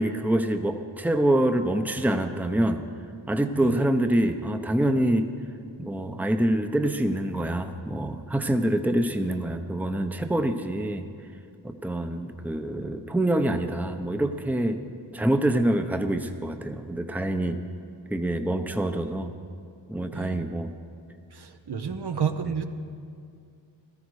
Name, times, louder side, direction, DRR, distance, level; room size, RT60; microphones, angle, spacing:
voice 1, 0.0-2.9 3.3-5.3 5.8-11.1 11.6-14.8 15.1-17.6 18.1-19.3 19.9-20.7, right 1 dB, 5° right, 6 dB, 0.9 m, -25 dB
voice 2, 3.5-3.8 20.1-20.4 21.3-22.6, right 7 dB, 55° right, 6 dB, 1.0 m, -31 dB
16.5 x 13.0 x 4.8 m, 2.4 s
cardioid pair, 45°, 47 cm